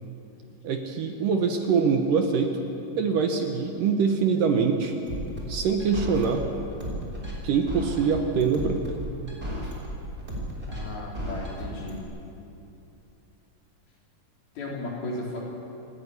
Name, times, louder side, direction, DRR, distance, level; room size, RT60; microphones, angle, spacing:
voice 1, 0.6-2.5 3.0-5.0 5.5-6.4 7.4-8.8, right 5 dB, 65° right, 4 dB, 2.4 m, -24 dB
sound 1, 5.1-12.0, equal, 15° right, 5.6 m, -34 dB
voice 2, 10.7-12.0 14.6-15.4, left 2 dB, 65° left, -4 dB, 5.9 m, -35 dB
29.5 x 10.0 x 9.6 m, 2.8 s
omnidirectional pair, 4.6 m